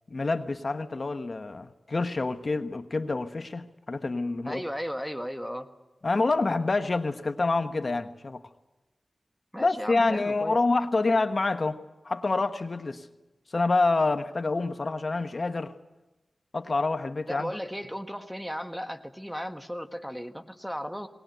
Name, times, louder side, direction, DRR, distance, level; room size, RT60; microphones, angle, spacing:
voice 1, 0.1-4.6 6.0-8.4 9.6-11.8 12.0-13.1 13.5-15.7 16.5-17.5, left 3 dB, 55° left, 9 dB, 1.1 m, -27 dB
voice 2, 4.4-5.7 9.5-10.6 17.3-21.1, equal, ahead, 7 dB, 1.6 m, -35 dB
20.5 x 19.0 x 9.1 m, 1.0 s
wide cardioid pair, 55°, 0 cm